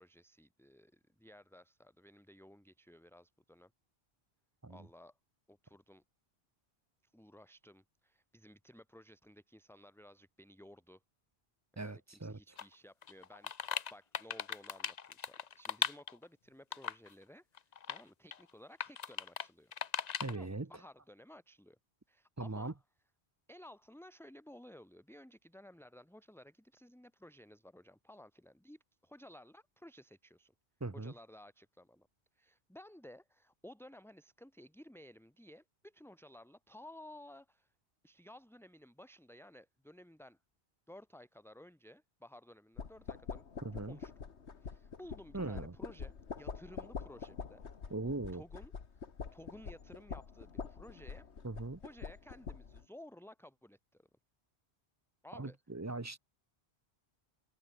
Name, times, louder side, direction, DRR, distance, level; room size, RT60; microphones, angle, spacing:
voice 1, 0.0-3.7 4.7-5.2 5.5-6.0 7.0-11.0 11.7-17.5 17.8-19.7 20.3-21.8 22.1-22.7 23.5-30.5 30.9-32.1 32.3-37.7 38.0-40.4 40.9-43.5 43.9-44.1 44.6-49.0 49.3-51.3 51.8-54.1 55.2-55.6 56.1-56.2, left 1 dB, ahead, 2.1 m, -56 dB
voice 2, 11.8-12.4 20.2-20.7 22.4-22.7 30.8-31.1 43.6-44.0 45.3-45.8 47.9-48.4 51.4-51.8 55.3-56.2, right 2 dB, 20° right, 0.7 m, -40 dB
sound 1, 12.6-12.7 13.0-16.3 16.7-17.1 17.6-18.0 18.3-18.4 18.8-19.5 19.7-20.4, left 7 dB, 45° left, 0.8 m, -38 dB
sound 2, 42.8-52.8, left 5 dB, 85° left, 1.8 m, -46 dB
omnidirectional pair, 1.1 m